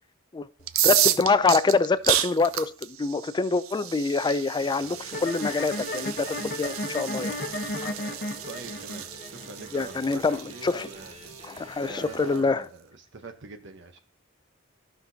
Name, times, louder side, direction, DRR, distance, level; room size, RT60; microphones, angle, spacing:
sound 1, 0.6-12.4, right 12 dB, 85° right, 0.6 m, -31 dB
voice 1, 0.8-7.4 7.8-7.9 9.7-10.9 11.5-12.6, left 4 dB, 20° left, 0.3 m, -25 dB
sound 2, 4.6-12.4, right 1 dB, 35° right, 1.5 m, -47 dB
sound 3, 5.1-12.1, left 2 dB, 50° left, 0.9 m, -35 dB
voice 2, 8.5-11.4 11.8-14.0, right 3 dB, 60° right, 0.9 m, -43 dB
14.0 x 5.8 x 2.7 m
head